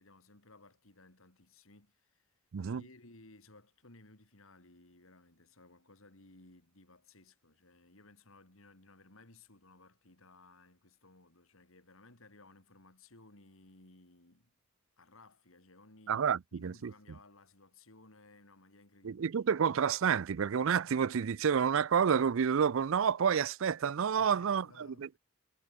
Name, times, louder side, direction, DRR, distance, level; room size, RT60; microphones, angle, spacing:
voice 1, 0.0-2.3 2.6-14.5 15.0-19.2 24.2-25.2, left 2 dB, 65° left, 3.4 m, -59 dB
voice 2, 16.1-16.9 19.0-24.6 25.0-25.1, right 7 dB, 65° right, 0.4 m, -29 dB
head